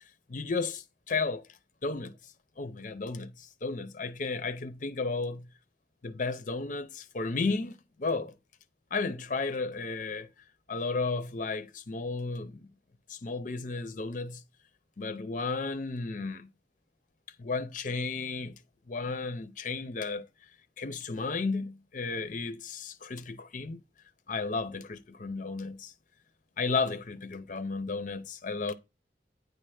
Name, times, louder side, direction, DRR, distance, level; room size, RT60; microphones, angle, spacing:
voice 1, 0.3-1.4 1.8-2.1 2.6-5.5 6.0-8.3 8.9-10.3 10.7-12.6 13.1-14.4 15.0-16.5 17.4-18.6 18.9-20.3 20.8-23.8 24.3-25.9 26.6-28.7, left 4 dB, 45° left, 0.6 m, -33 dB
9.4 x 3.3 x 6.3 m
head